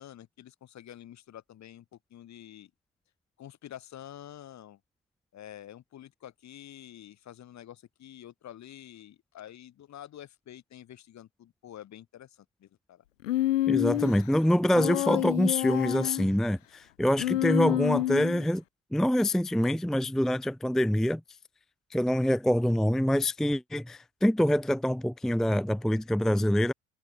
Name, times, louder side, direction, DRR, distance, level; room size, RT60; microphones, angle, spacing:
voice 1, 0.0-2.7 3.4-4.8 5.3-13.0, left 11 dB, 45° left, 3.2 m, -48 dB
Human voice, 13.2-14.2 14.7-16.3 17.2-18.4, left 14 dB, 80° left, 0.5 m, -28 dB
voice 2, 13.7-18.6 18.9-21.2 21.9-26.7, equal, ahead, 0.6 m, -25 dB
figure-of-eight pair, 50°, 38 cm